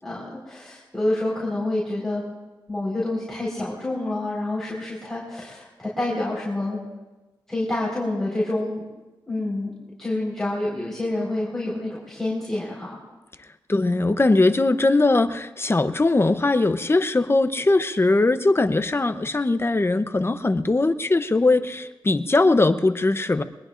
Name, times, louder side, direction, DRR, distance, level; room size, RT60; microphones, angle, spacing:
voice 1, 0.0-2.2 2.7-6.8 7.5-8.9 9.3-9.7 10.0-13.0 13.7-13.9, left 1 dB, 5° left, -7 dB, 4.5 m, -28 dB
voice 2, 13.7-23.4, left 2 dB, 30° left, 11 dB, 0.7 m, -20 dB
23.5 x 20.0 x 2.5 m, 1.2 s
wide cardioid pair, 75°, 8 cm